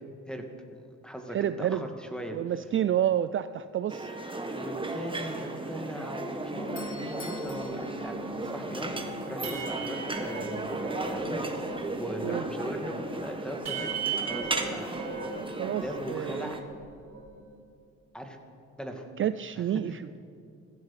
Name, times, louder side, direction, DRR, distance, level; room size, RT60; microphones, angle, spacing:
voice 1, 0.7-2.4 4.5-8.9 9.3-11.7 12.0-13.9 14.2-14.9 15.8-16.6 18.1-18.4 18.8-19.1 19.6-20.2, equal, 5° left, 3 dB, 2.2 m, -39 dB
voice 2, 1.3-1.8 2.3-4.1 12.2-12.5 15.6-15.8 16.1-16.5 19.2-20.2, right 10 dB, 45° right, 13 dB, 0.4 m, -29 dB
sound 1, 3.9-16.6, right 2 dB, 15° right, 1.6 m, -35 dB
sound 2, 6.4-11.9 12.1-16.0 16.3-17.5, right 5 dB, 60° right, 4.0 m, -39 dB
Doorbell, 6.6-9.2, left 6 dB, 45° left, 1.7 m, -50 dB
16.0 x 15.5 x 5.9 m, 2.5 s
cardioid pair, 90°, 30 cm